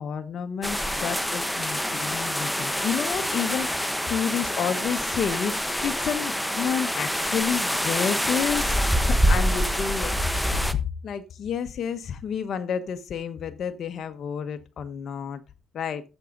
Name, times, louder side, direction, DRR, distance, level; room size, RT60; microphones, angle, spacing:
voice 1, 0.0-10.2 10.7-10.8 11.0-15.4 15.7-16.0, left 7 dB, 60° left, 1.0 m, -30 dB
sound 1, 0.6-10.7, equal, 5° left, 1.1 m, -26 dB
13.5 x 7.1 x 3.9 m
cardioid pair, 90°, 0 cm